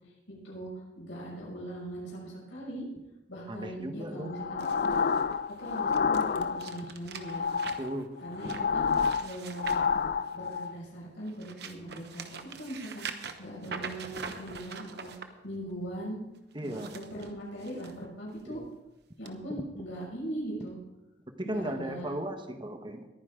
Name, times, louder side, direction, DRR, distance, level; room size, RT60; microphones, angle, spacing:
voice 1, 0.3-2.8 3.3-5.0 5.6-7.5 8.2-8.9 9.2-9.8 10.3-12.2 12.5-16.2 16.6-18.6 19.2-20.8 21.4-22.1, right 1 dB, 75° left, -4 dB, 6.3 m, -40 dB
voice 2, 3.5-4.3 7.8-8.1 8.4-8.5 16.5-16.9 18.4-18.7 21.3-23.1, right 1 dB, 25° right, 6 dB, 1.2 m, -36 dB
sound 1, 4.3-6.9 7.2-10.7, left 5 dB, 50° left, 0.3 m, -29 dB
sound 2, 4.6-10.7 11.2-15.3 16.5-17.9 18.4-18.6 19.3-19.4, right 5 dB, 55° right, 1.0 m, -44 dB
21.0 x 9.9 x 3.7 m, 1.0 s
head